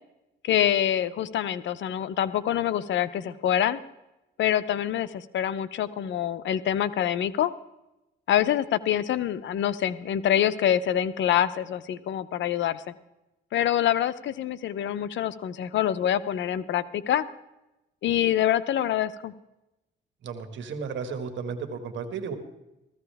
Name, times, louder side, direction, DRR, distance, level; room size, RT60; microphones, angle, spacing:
voice 1, 0.4-3.8 4.4-7.5 8.3-12.8 13.5-17.3 18.0-19.3, left 11 dB, 70° left, 15 dB, 0.7 m, -25 dB
voice 2, 20.2-22.4, right 5 dB, 70° right, 7 dB, 1.9 m, -34 dB
16.0 x 14.5 x 3.5 m, 0.94 s
cardioid pair, 90°, 20 cm